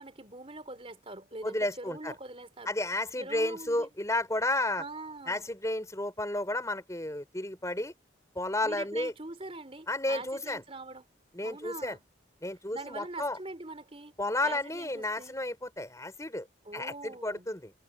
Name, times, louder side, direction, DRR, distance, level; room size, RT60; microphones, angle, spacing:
voice 1, 0.0-2.7 3.2-3.9 4.8-5.5 8.6-11.0 11.4-12.0 12.7-14.1 14.4-15.3 16.6-17.5, right 2 dB, 30° right, 3.7 m, -43 dB
voice 2, 1.4-2.1 2.7-4.8 5.3-7.9 8.3-9.1 9.9-10.6 11.3-12.0 12.4-13.4 14.2-16.5 16.7-17.7, left 1 dB, 15° left, 4.4 m, -32 dB
head